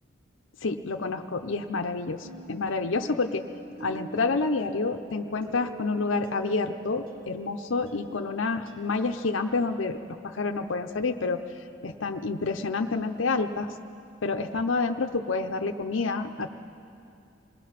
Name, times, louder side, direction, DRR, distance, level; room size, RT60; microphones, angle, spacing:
voice 1, 0.6-3.4 3.8-10.0 10.2-11.4 11.8-13.7 14.2-16.5, left 3 dB, 80° left, 6 dB, 0.7 m, -28 dB
sound 1, 2.2-9.5, right 2 dB, 80° right, 2.1 m, -45 dB
26.5 x 20.0 x 5.8 m, 2.6 s
head